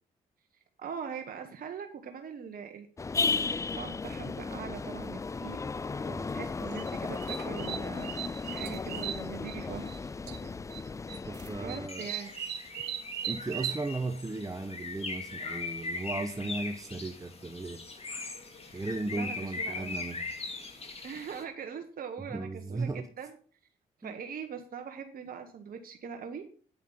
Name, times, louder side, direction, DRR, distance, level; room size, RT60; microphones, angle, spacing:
voice 1, 0.8-2.9 3.2-5.6 6.3-10.0 11.6-12.3 18.8-18.9 19.1-20.0 21.0-23.3 24.0-26.4, right 7 dB, 55° right, 5 dB, 1.2 m, -42 dB
sound 1, 3.0-11.9, left 4 dB, 20° left, 0.3 m, -35 dB
voice 2, 6.1-6.4 11.3-12.1 13.3-17.8 18.7-20.3 22.3-23.1 24.0-24.1, right 2 dB, 20° right, 8 dB, 0.9 m, -36 dB
sound 2, 6.7-10.0 10.3-10.8 11.1-13.8, right 10 dB, 75° right, 0.9 m, -38 dB
Bird, 11.9-21.4, left 3 dB, 35° left, 2.3 m, -40 dB
8.7 x 7.1 x 5.7 m, 0.44 s
hypercardioid pair, 45°, 17 cm